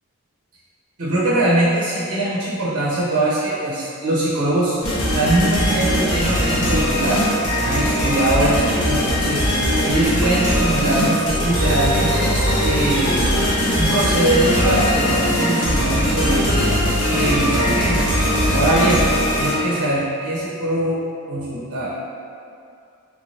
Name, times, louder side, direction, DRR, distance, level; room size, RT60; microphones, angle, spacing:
voice 1, 1.0-4.8 5.1-7.2 7.6-13.3 13.7-16.6 17.1-18.1 18.5-19.1 19.3-21.0 21.3-21.9, right 1 dB, 60° right, -8 dB, 0.6 m, -22 dB
sound 1, 4.8-19.9, equal, 85° left, 0.9 m, -20 dB
3.4 x 2.6 x 3.1 m, 2.5 s
head